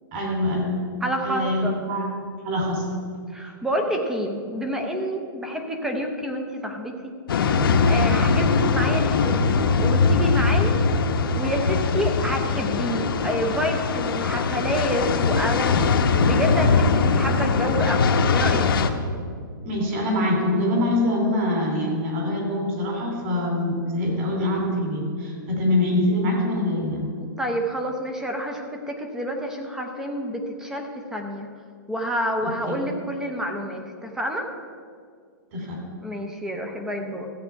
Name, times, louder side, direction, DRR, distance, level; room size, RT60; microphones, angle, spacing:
voice 1, 0.1-0.8 1.2-2.0 2.4-2.9 19.6-27.1 32.4-32.8 35.5-35.8, left 1 dB, 35° right, -1 dB, 3.1 m, -24 dB
voice 2, 1.0-1.8 3.3-9.3 9.8-10.8 11.3-18.7 27.2-31.5 31.9-34.5 36.0-37.3, equal, 5° right, 3 dB, 0.6 m, -28 dB
sound 1, 7.3-18.9, left 4 dB, 75° left, 0.9 m, -21 dB
14.0 x 8.0 x 4.6 m, 2.1 s
hypercardioid pair, 170°, 12 cm